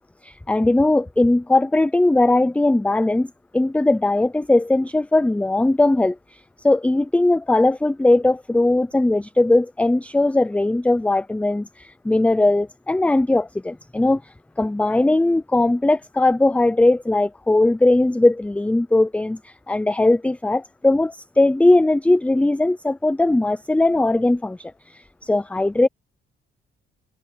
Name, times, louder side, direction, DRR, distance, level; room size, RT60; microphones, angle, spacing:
voice 1, 0.2-25.9, left 2 dB, 5° left, 0.5 m, -19 dB
cardioid pair, 90°, 20 cm